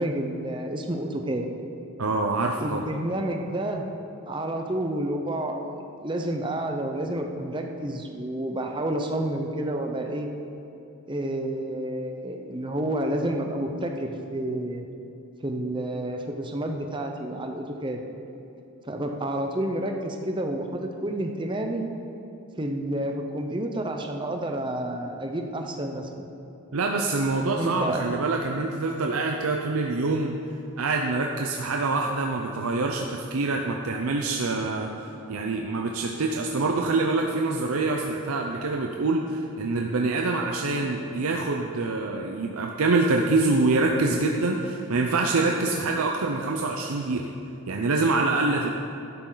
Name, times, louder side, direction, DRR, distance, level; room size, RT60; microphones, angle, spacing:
voice 1, 0.0-1.5 2.6-3.8 4.3-10.3 11.1-14.9 15.4-18.0 18.8-21.8 22.6-26.1 27.6-28.0, right 1 dB, 20° right, 3 dB, 0.7 m, -29 dB
voice 2, 2.0-2.8 26.7-30.3 30.8-34.9 35.3-47.3 47.7-48.7, right 3 dB, 80° right, 1 dB, 0.7 m, -25 dB
12.0 x 11.0 x 4.0 m, 2.8 s
head